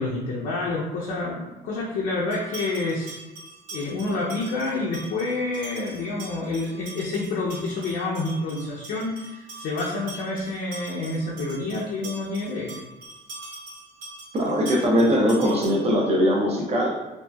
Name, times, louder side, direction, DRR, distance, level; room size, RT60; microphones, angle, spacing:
voice 1, 0.0-3.2 3.7-12.8, left 2 dB, 70° left, -5 dB, 0.5 m, -28 dB
sound 1, 2.3-16.0, right 2 dB, 80° right, 1.2 m, -42 dB
voice 2, 14.3-17.1, equal, 40° right, -1 dB, 0.6 m, -21 dB
2.7 x 2.3 x 2.3 m, 1.1 s
cardioid pair, 110°, 17 cm